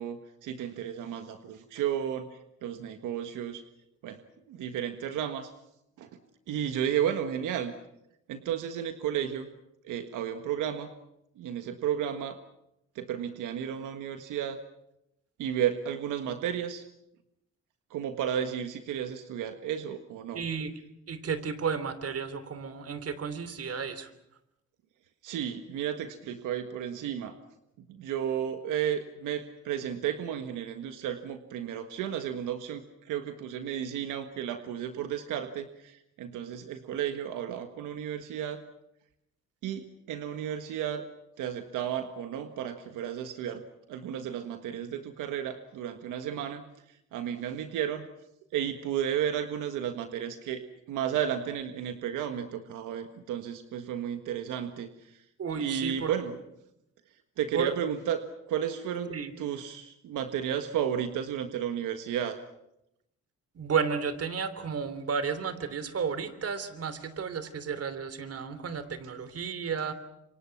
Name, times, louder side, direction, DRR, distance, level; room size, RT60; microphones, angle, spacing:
voice 1, 0.0-3.6 4.0-4.2 4.5-5.5 6.0-6.1 6.5-7.7 8.3-9.5 9.8-10.9 11.4-12.4 12.9-14.6 15.4-16.8 17.9-20.4 25.2-27.3 27.9-38.6 39.6-41.0 41.4-43.6 43.9-48.1 48.5-50.6 50.9-55.2 55.5-56.3 57.4-58.2 58.5-62.4, right 9 dB, 85° right, 7 dB, 1.6 m, -33 dB
voice 2, 20.3-20.7 21.1-24.1 55.4-56.1 57.5-57.7 59.1-59.3 63.5-69.9, right 6 dB, 50° right, 13 dB, 3.3 m, -32 dB
27.5 x 25.0 x 6.0 m, 0.81 s
cardioid pair, 90°, 30 cm